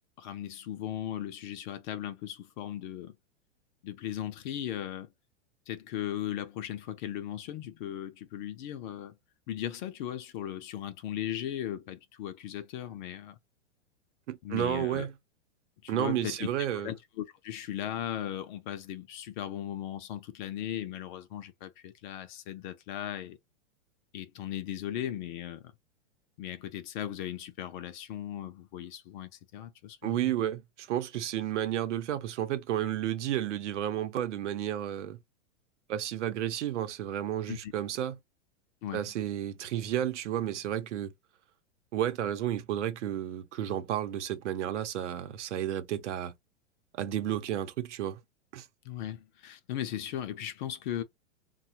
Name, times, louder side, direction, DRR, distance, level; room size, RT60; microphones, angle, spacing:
voice 1, 0.2-3.2 3.8-5.1 5.7-9.2 9.5-13.4 14.4-15.1 15.8-23.4 24.1-25.7 26.4-30.3 37.5-37.7 38.8-39.0 48.8-51.0, left 11 dB, 40° left, 0.6 m, -37 dB
voice 2, 14.3-15.1 15.9-16.9 30.0-35.2 35.9-38.2 38.9-41.1 41.9-46.4 46.9-48.2 48.5-48.7, right 11 dB, 75° right, 0.8 m, -32 dB
3.4 x 2.3 x 2.7 m
hypercardioid pair, 140°, 36 cm